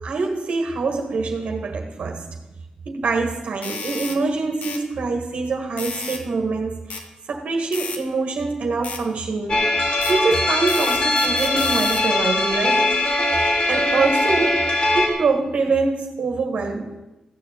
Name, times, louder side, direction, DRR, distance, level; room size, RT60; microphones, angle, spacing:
voice 1, 0.0-2.3 2.8-7.0 7.3-9.6 10.1-13.0 13.7-16.9, right 4 dB, 70° right, 3 dB, 1.7 m, -24 dB
sound 1, 3.6-4.2 4.6-4.8 5.8-6.2 6.9-7.0 7.7-8.0 8.8-9.0 10.0-10.2 10.7-12.1, left 4 dB, 85° left, 1.6 m, -32 dB
sound 2, 9.5-15.1, left 2 dB, 40° left, 3.3 m, -21 dB
15.0 x 7.0 x 8.8 m, 1.0 s
wide cardioid pair, 125°, 2 cm